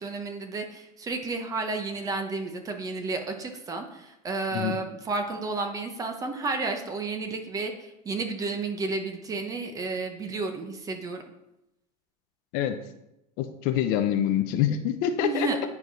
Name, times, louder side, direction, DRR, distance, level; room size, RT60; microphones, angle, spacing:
voice 1, 0.0-11.2 15.2-15.7, right 3 dB, 15° right, 5 dB, 0.9 m, -32 dB
voice 2, 13.4-15.5, left 10 dB, 45° left, 8 dB, 0.8 m, -26 dB
9.7 x 4.8 x 5.4 m, 0.88 s
supercardioid pair, 160°, 20 cm